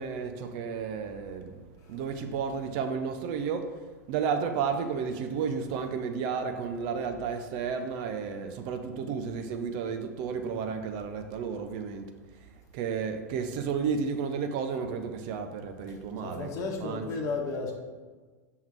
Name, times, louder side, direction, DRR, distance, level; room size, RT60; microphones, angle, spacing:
voice 1, 0.0-1.6 1.9-3.8 4.1-12.1 12.7-16.5 16.8-17.0, right 6 dB, 45° right, 0.6 m, -32 dB
voice 2, 15.9-17.7, left 3 dB, 35° left, 1.1 m, -34 dB
6.3 x 3.7 x 4.4 m
figure-of-eight pair, 90°, 10 cm